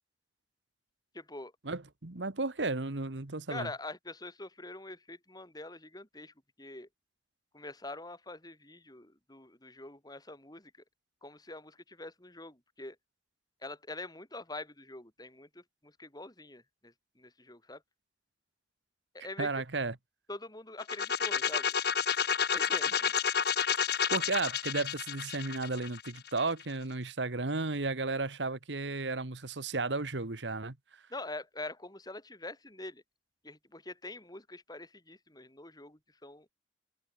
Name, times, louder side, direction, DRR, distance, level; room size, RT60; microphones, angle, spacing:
voice 1, 1.1-1.5 3.5-6.9 7.5-10.7 11.2-13.0 13.6-17.8 19.2-19.6 20.3-21.7 22.5-23.1 31.1-33.0 33.4-36.5, left 2 dB, 20° left, 6.7 m, -44 dB
voice 2, 1.6-3.7 19.4-20.0 24.1-30.8, right 3 dB, 85° right, 1.6 m, -34 dB
sound 1, 20.8-26.6, left 7 dB, 60° left, 3.4 m, -30 dB
open air
head